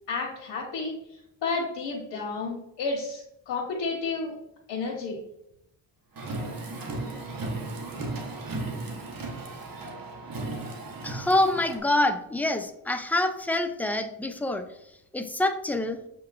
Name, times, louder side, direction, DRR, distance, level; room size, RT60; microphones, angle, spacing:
voice 1, 0.1-0.9 1.4-4.3 4.7-5.2, left 4 dB, 75° left, -4 dB, 1.3 m, -31 dB
Car, 6.2-11.8, right 2 dB, 50° right, 1.2 m, -35 dB
voice 2, 11.0-14.6 15.1-16.0, left 2 dB, 5° left, 7 dB, 0.3 m, -26 dB
6.7 x 3.0 x 2.5 m, 0.79 s
cardioid pair, 85°, 43 cm